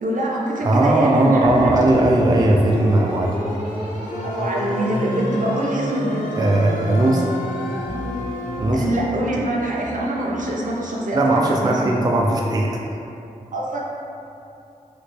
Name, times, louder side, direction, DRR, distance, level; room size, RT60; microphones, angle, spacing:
voice 1, 0.0-1.8 4.2-6.5 8.7-11.9 13.5-13.8, right 1 dB, 65° right, -3 dB, 0.6 m, -24 dB
voice 2, 0.6-3.4 6.4-7.3 8.6-9.0 11.1-12.8, right 1 dB, 30° right, -1 dB, 0.3 m, -18 dB
sound 1, 1.4-11.0, equal, 80° left, 1.4 m, -30 dB
Wind instrument woodwind instrument, 4.1-8.7, left 2 dB, 65° left, 0.5 m, -34 dB
3.1 x 2.9 x 3.1 m, 2.7 s
cardioid pair, 50°, 14 cm